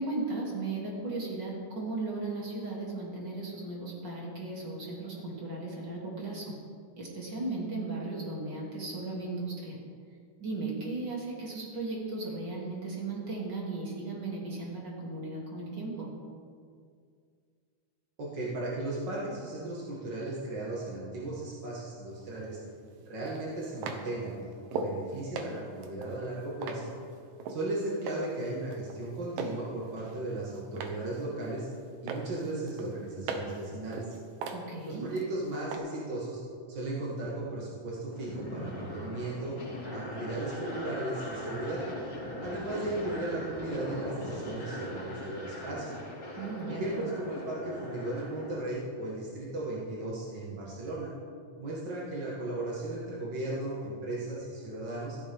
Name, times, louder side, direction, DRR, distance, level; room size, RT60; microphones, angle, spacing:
voice 1, 0.0-6.5 7.0-9.8 10.4-16.1 34.5-35.1 46.4-47.0, right 2 dB, 30° right, -4 dB, 3.0 m, -36 dB
voice 2, 18.2-22.6 23.0-24.3 24.7-26.9 27.5-31.7 32.0-34.1 34.8-36.4 36.7-39.5 39.9-41.8 42.4-45.9 46.7-51.1 51.6-55.2, right 2 dB, 45° right, -5 dB, 1.5 m, -36 dB
sound 1, 22.2-22.3 23.3-25.0 25.4-27.6 28.1-28.4 28.7-29.6 30.0-31.1 31.4-31.8 32.1-33.6 33.9-35.3 35.7-35.8, right 4 dB, 70° right, 2.4 m, -38 dB
sound 2, 38.1-48.6, equal, 40° left, 3.8 m, -40 dB
15.0 x 14.5 x 3.7 m, 2.2 s
omnidirectional pair, 4.5 m